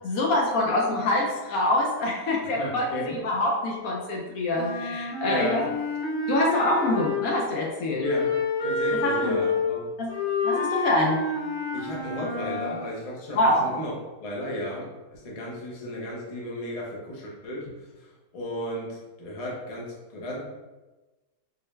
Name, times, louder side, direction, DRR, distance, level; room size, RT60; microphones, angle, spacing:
voice 1, 0.0-5.6 6.3-8.0 9.0-9.4 10.0-10.1 10.4-11.3 13.3-13.6, left 1 dB, 70° left, -1 dB, 0.9 m, -25 dB
voice 2, 2.6-3.2 5.2-5.6 8.0-8.3 8.6-9.9 11.7-13.9 14.2-20.5, left 1 dB, 45° left, -3 dB, 0.4 m, -34 dB
Wind instrument woodwind instrument, 4.6-7.5 8.0-12.9, left 3 dB, 90° left, 0.6 m, -28 dB
4.5 x 2.1 x 3.1 m, 1.1 s
omnidirectional pair, 1.8 m